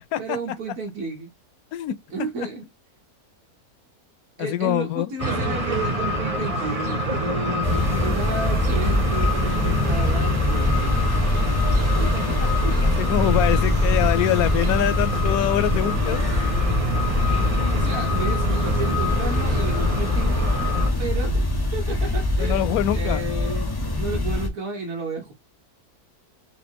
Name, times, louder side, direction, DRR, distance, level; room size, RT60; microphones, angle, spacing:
voice 1, 0.2-1.3 2.1-2.7 4.4-11.3 12.0-13.2 17.3-20.4 21.0-21.5 21.7-25.3, right 3 dB, 65° right, 1.7 m, -33 dB
voice 2, 4.4-5.1 12.8-16.2 22.4-23.2, left 12 dB, 80° left, 1.0 m, -24 dB
sound 1, 5.2-20.9, equal, 30° right, 0.8 m, -27 dB
sound 2, 7.6-24.5, left 2 dB, 30° left, 0.4 m, -23 dB
4.3 x 2.8 x 2.7 m
omnidirectional pair, 1.6 m